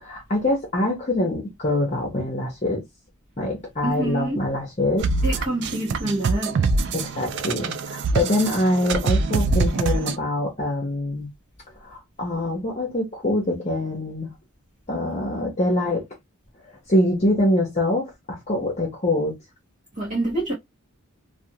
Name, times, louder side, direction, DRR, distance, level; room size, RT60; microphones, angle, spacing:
voice 1, 0.0-2.8 3.4-5.1 5.4-5.5 6.9-11.3 11.8-14.3 14.9-16.0 16.9-19.3, left 1 dB, 30° left, 0.8 m, -24 dB
voice 2, 3.8-4.4 5.2-6.9 20.0-20.5, right 2 dB, 35° right, 0.9 m, -27 dB
sound 1, 5.0-10.2, right 3 dB, 50° right, 0.3 m, -24 dB
2.4 x 2.4 x 2.8 m
head